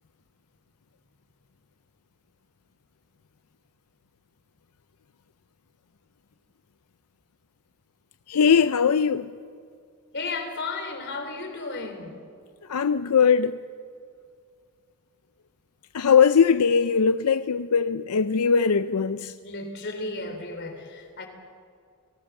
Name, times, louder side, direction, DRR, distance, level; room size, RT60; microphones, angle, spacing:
voice 1, 8.3-9.3 12.7-13.6 15.9-19.3, left 6 dB, 85° left, 0.5 m, -20 dB
voice 2, 10.1-12.1 19.4-21.3, left 3 dB, 50° left, 3.6 m, -34 dB
29.5 x 19.0 x 7.2 m
head